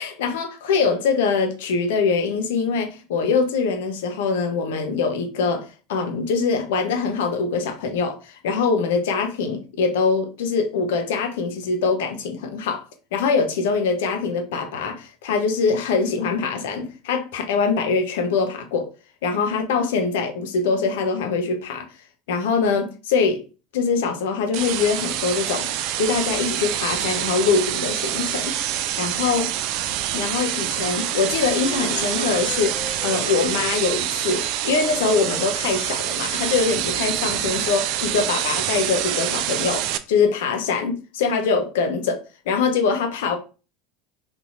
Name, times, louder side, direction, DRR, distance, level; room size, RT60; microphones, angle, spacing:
voice 1, 0.0-12.8 13.1-18.9 19.2-21.9 22.3-23.4 23.7-25.7 26.0-28.6 29.0-29.5 30.1-42.2 42.5-43.4, left 5 dB, 65° left, 0.8 m, -23 dB
sound 1, 24.5-40.0, right 12 dB, 55° right, 0.3 m, -26 dB
Wind instrument woodwind instrument, 30.8-35.9, left 2 dB, 90° left, 1.0 m, -37 dB
4.1 x 2.8 x 2.5 m
figure-of-eight pair, 75°, 0 cm